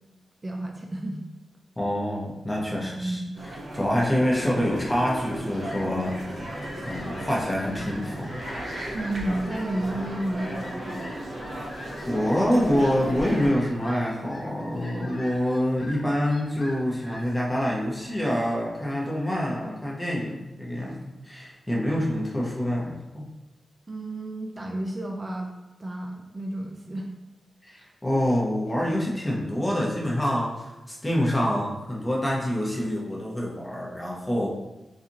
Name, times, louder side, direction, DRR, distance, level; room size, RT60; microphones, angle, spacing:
voice 1, 0.4-1.2 2.8-3.4 8.9-11.0 23.9-25.5 25.8-27.1, right 1 dB, 30° right, 0 dB, 0.3 m, -31 dB
voice 2, 1.8-3.2 3.7-6.6 6.8-8.4 12.0-23.3 27.6-34.5, equal, 20° left, -4 dB, 0.7 m, -26 dB
sound 1, 3.4-13.5, right 1 dB, 60° right, 0.7 m, -36 dB
Fowl, 5.3-19.0, left 1 dB, 45° left, 0.4 m, -45 dB
2.8 x 2.4 x 2.5 m, 1.0 s
cardioid pair, 65°, 0 cm